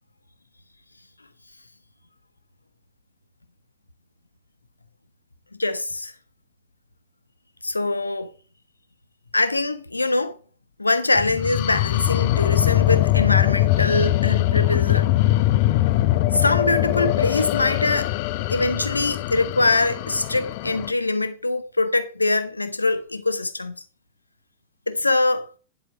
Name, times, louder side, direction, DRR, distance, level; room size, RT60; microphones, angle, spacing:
voice 1, 5.6-6.1 7.6-8.3 9.3-10.4 10.8-15.1 16.3-18.1 18.5-23.7 24.9-25.5, left 2 dB, 80° left, 1.1 m, -23 dB
sound 1, 11.2-20.9, left 16 dB, 50° left, 0.5 m, -22 dB
10.5 x 7.2 x 4.7 m
figure-of-eight pair, 90°, 0 cm